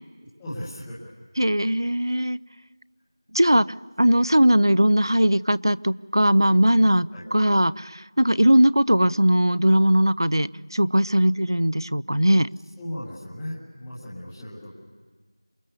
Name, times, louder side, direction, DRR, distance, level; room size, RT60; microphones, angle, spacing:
voice 1, 0.4-1.1 7.1-7.3 12.8-14.7, left 1 dB, ahead, -10 dB, 0.8 m, -36 dB
voice 2, 1.4-2.4 3.3-3.7 4.0-12.5, equal, 60° right, 19 dB, 0.8 m, -19 dB
27.5 x 27.5 x 6.8 m, 1.5 s
figure-of-eight pair, 175°, 2 cm